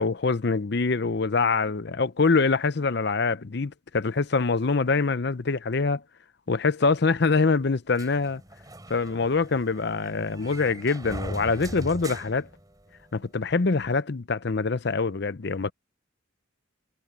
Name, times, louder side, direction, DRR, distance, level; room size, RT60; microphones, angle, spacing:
voice 1, 0.0-6.0 6.5-8.4 8.9-12.5 13.1-15.7, left 4 dB, 60° left, 0.7 m, -24 dB
sound 1, 7.9-13.2, right 1 dB, 20° right, 5.0 m, -40 dB
head